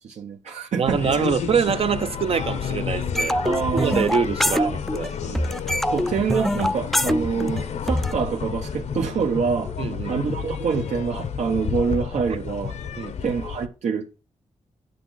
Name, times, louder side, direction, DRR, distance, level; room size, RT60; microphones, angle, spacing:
voice 1, 0.0-1.3 3.4-4.0 4.5-4.7 5.9-9.7 10.1-12.8 13.2-14.2, right 6 dB, 80° right, 1.0 m, -26 dB
voice 2, 0.7-3.4 3.7-5.5 9.8-10.2 12.3-12.4 13.0-13.1, right 7 dB, 55° right, 0.6 m, -25 dB
sound 1, 0.8-13.7, left 7 dB, 75° left, 0.9 m, -31 dB
sound 2, 3.1-5.1 5.3-8.1, equal, ahead, 0.3 m, -24 dB
10.0 x 6.7 x 3.9 m
wide cardioid pair, 150°, 12 cm